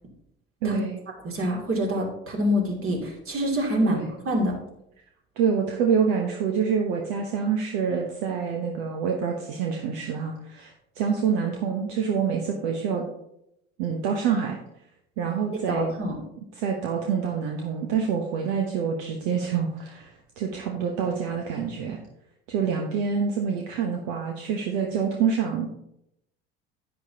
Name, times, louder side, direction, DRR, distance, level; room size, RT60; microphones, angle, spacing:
voice 1, 0.6-1.0 3.8-4.1 5.4-13.0 13.8-14.6 15.2-16.0 16.5-22.0 22.5-25.7, right 6 dB, 65° right, 2 dB, 1.1 m, -26 dB
voice 2, 1.2-4.0 4.2-4.6 15.7-16.2, equal, 40° right, 0 dB, 2.7 m, -26 dB
10.5 x 8.9 x 2.8 m, 0.80 s
hypercardioid pair, 60°, 33 cm